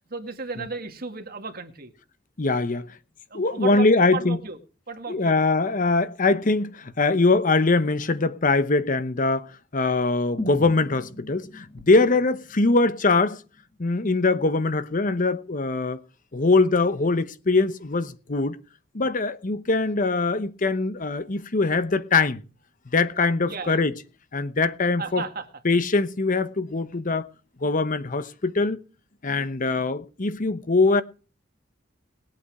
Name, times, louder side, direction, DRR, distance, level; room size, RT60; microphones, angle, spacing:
voice 1, 0.1-1.9 3.3-4.6 4.9-5.4 11.9-12.0 23.4-23.9 25.0-25.5, right 4 dB, 50° right, 2.1 m, -34 dB
voice 2, 2.4-2.9 3.3-4.4 5.1-13.4 13.8-16.0 16.3-18.6 18.9-22.4 22.9-23.9 24.3-25.2 25.6-27.3 27.6-28.8 29.2-31.0, left 3 dB, 45° left, 0.9 m, -22 dB
sound 1, 10.4-14.3 14.7-14.8, left 1 dB, 30° left, 2.0 m, -39 dB
20.5 x 8.4 x 4.8 m
head